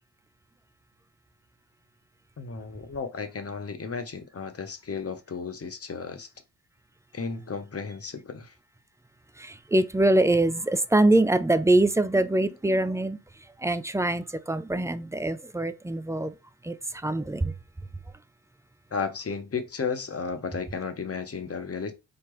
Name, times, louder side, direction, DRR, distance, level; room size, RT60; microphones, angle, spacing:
voice 1, 2.4-6.3 7.1-8.5 18.9-21.9, left 5 dB, 35° left, 0.9 m, -34 dB
voice 2, 9.4-13.2 13.6-16.3 16.6-17.6, right 2 dB, 10° right, 0.3 m, -24 dB
4.5 x 2.5 x 3.0 m
hypercardioid pair, 40°, 43 cm